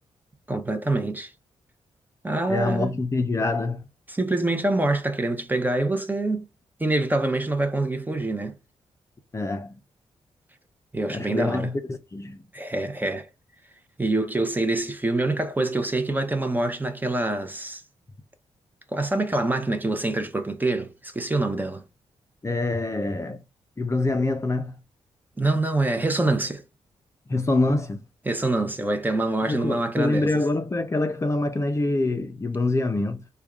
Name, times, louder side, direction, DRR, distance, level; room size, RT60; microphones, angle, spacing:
voice 1, 0.5-1.3 2.2-3.0 4.1-6.5 6.8-8.5 10.9-11.7 12.5-13.3 14.0-17.8 18.9-21.8 25.4-26.6 28.3-30.3, right 2 dB, 15° right, 0.7 m, -25 dB
voice 2, 2.5-3.8 9.3-9.8 11.1-12.4 22.4-23.4 23.8-24.7 27.3-28.0 29.4-33.2, left 2 dB, 25° left, 0.5 m, -25 dB
3.5 x 2.3 x 3.5 m
cardioid pair, 65°, 12 cm